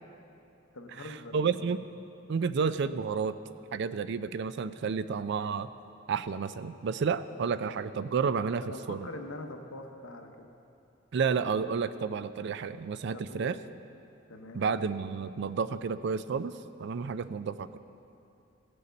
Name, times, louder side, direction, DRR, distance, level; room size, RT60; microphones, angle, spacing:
voice 1, 0.7-1.7 8.6-10.5 13.1-13.6 14.3-14.7, left 1 dB, 85° left, 4 dB, 1.0 m, -43 dB
voice 2, 1.3-1.8 2.3-3.3 3.7-5.7 6.1-8.6 8.9-9.1 11.1-13.6 14.5-16.5 16.8-17.8, right 5 dB, 55° right, 13 dB, 0.4 m, -30 dB
16.5 x 6.8 x 5.2 m, 2.7 s
head